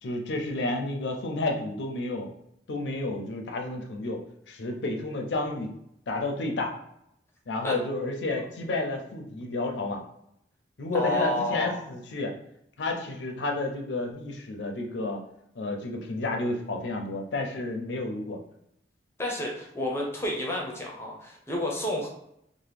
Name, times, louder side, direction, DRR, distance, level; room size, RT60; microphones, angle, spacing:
voice 1, 0.0-2.3 2.7-5.7 6.1-6.7 7.5-10.0 10.8-12.3 12.8-15.2 15.6-18.4, left 2 dB, 85° left, 2 dB, 0.5 m, -31 dB
voice 2, 10.9-11.8 19.2-22.1, left 1 dB, 15° left, -1 dB, 0.5 m, -30 dB
2.8 x 2.1 x 3.4 m, 0.76 s
head